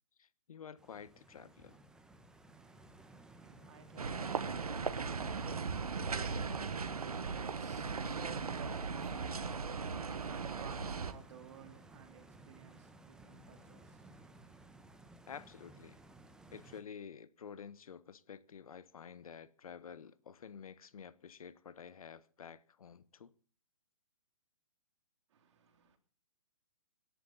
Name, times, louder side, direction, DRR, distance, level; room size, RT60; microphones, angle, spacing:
voice 1, 0.2-1.8 15.3-16.0 16.5-23.3, left 7 dB, 70° left, 1.2 m, -50 dB
Stream, 0.8-16.8, right 2 dB, 5° right, 1.2 m, -57 dB
voice 2, 2.5-14.6 25.3-26.0, right 7 dB, 50° right, 3.5 m, -55 dB
sound 1, 4.0-11.1, right 5 dB, 90° right, 1.6 m, -38 dB
26.0 x 11.0 x 4.1 m
hypercardioid pair, 145°, 19 cm